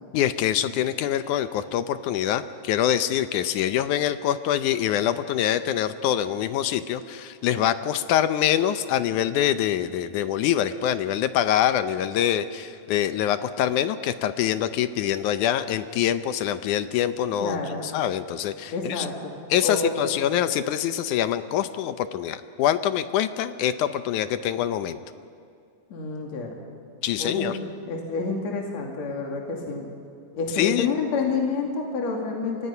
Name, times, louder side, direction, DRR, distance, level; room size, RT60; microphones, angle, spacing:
voice 1, 0.1-19.1 19.5-25.0 27.0-27.6 30.6-30.9, left 10 dB, 75° left, 11 dB, 2.1 m, -25 dB
voice 2, 17.4-17.9 18.7-20.2 25.9-26.5 27.2-29.9 30.3-32.7, left 4 dB, 55° left, 1 dB, 3.4 m, -29 dB
29.5 x 25.0 x 5.7 m, 2.4 s
omnidirectional pair, 3.8 m